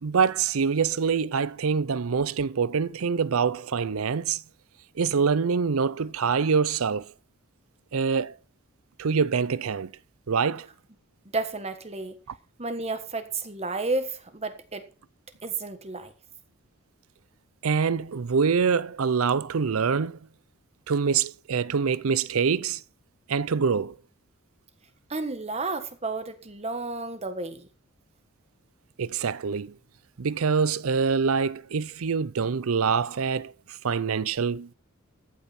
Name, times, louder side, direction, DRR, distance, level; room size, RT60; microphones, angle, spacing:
voice 1, 0.0-4.4 5.0-7.1 7.9-8.4 9.0-9.9 10.3-10.7 17.6-20.2 20.9-22.8 23.3-23.9 29.0-29.7 30.2-33.5 33.8-34.7, right 5 dB, 80° right, 0.6 m, -25 dB
voice 2, 11.3-12.2 12.6-14.9 15.4-16.1 25.1-27.7, right 3 dB, 30° right, 1.4 m, -32 dB
14.0 x 9.0 x 4.2 m
head